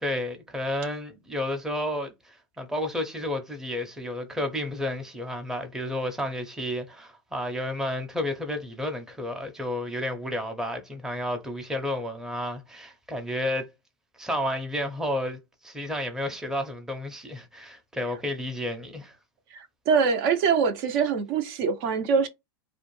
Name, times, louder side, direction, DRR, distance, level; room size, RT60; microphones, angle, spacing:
voice 1, 0.0-13.7 14.2-19.2, left 1 dB, 5° right, 0.6 m, -31 dB
voice 2, 19.5-22.3, right 6 dB, 60° right, 0.6 m, -24 dB
2.4 x 2.1 x 3.1 m
hypercardioid pair, 115°, 13 cm